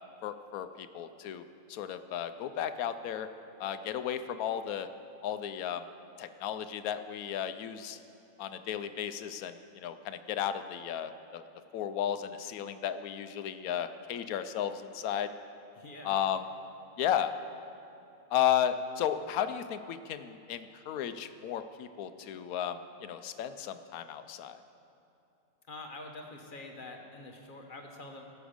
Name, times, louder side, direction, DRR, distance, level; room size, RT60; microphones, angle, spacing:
voice 1, 0.2-3.3 3.6-4.9 5.2-5.8 6.2-8.0 8.4-11.4 11.7-15.3 16.0-16.4 17.0-17.3 18.3-24.6, left 9 dB, 90° left, 10 dB, 1.1 m, -34 dB
voice 2, 15.7-16.1 25.7-28.2, left 2 dB, 40° left, 2 dB, 1.2 m, -46 dB
17.5 x 7.1 x 5.1 m, 2.8 s
omnidirectional pair, 1.5 m